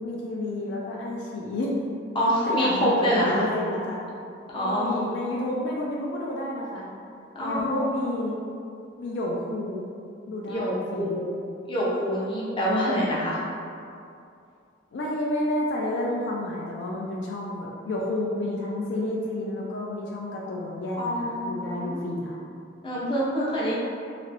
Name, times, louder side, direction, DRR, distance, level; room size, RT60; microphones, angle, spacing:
voice 1, 0.0-1.8 2.5-4.0 4.6-6.9 7.4-8.4 9.0-9.9 10.3-11.2 14.9-22.4, left 1 dB, 70° left, -3 dB, 0.4 m, -30 dB
voice 2, 2.1-3.4 4.5-5.0 7.3-8.1 10.5-11.4 11.7-13.4 21.0-22.0 22.8-23.7, equal, 25° left, -7 dB, 0.6 m, -26 dB
3.0 x 2.9 x 2.5 m, 2.4 s
head